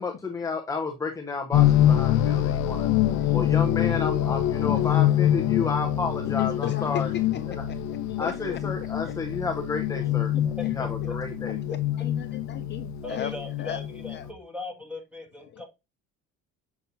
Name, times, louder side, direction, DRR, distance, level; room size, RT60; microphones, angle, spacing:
voice 1, 0.0-2.9 3.3-7.1 7.5-7.6 8.2-10.3 10.7-11.6, left 4 dB, 10° left, 0.7 m, -31 dB
sound 1, 1.5-14.3, left 12 dB, 65° left, 0.7 m, -25 dB
voice 2, 2.9-3.4 4.6-5.0 6.3-8.7 9.0-9.2 10.0-10.5 11.7-13.3 13.6-14.3 15.5-15.6, left 11 dB, 40° left, 0.4 m, -37 dB
voice 3, 10.4-11.1 11.7-11.8 13.0-15.6, left 2 dB, 5° right, 1.9 m, -38 dB
6.8 x 5.9 x 2.7 m
cardioid pair, 155°, 29 cm